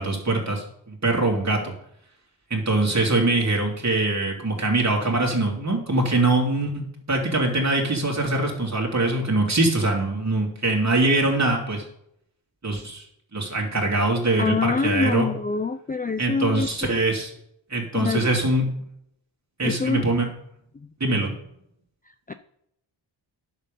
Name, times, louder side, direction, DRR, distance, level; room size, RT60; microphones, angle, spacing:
voice 1, 0.0-1.7 2.5-11.8 12.6-13.1 13.3-15.3 16.2-17.3 17.7-18.7 19.6-20.3 21.0-21.3, right 2 dB, 35° right, 0 dB, 3.0 m, -23 dB
voice 2, 14.4-17.0 17.9-18.3 19.6-20.1 20.7-20.9 22.3-22.4, left 4 dB, 20° left, 10 dB, 0.4 m, -26 dB
10.5 x 6.9 x 5.3 m, 0.75 s
wide cardioid pair, 85°, 48 cm